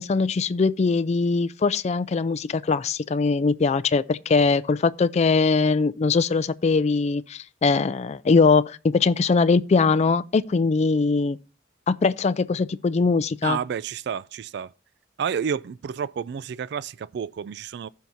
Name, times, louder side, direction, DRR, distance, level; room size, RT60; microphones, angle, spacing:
voice 1, 0.0-11.4 11.9-13.6, left 4 dB, 35° left, 0.3 m, -21 dB
voice 2, 13.4-14.7 15.2-17.9, right 7 dB, 60° right, 0.3 m, -30 dB
15.0 x 5.8 x 2.6 m
head